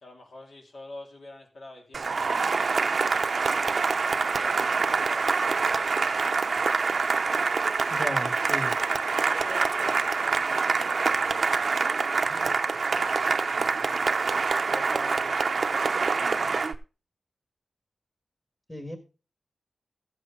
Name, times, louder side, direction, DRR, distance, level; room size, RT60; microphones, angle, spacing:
voice 1, 0.0-3.7 4.2-6.7 9.1-13.6 14.1-16.3, left 1 dB, 70° left, 0 dB, 3.3 m, -47 dB
Cheering / Applause, 1.9-16.7, right 4 dB, 55° right, 0.7 m, -25 dB
voice 2, 7.9-8.7 12.3-12.5 18.7-19.0, equal, 10° left, 6 dB, 1.6 m, -35 dB
14.5 x 7.7 x 3.7 m, 0.33 s
wide cardioid pair, 110°, 0 cm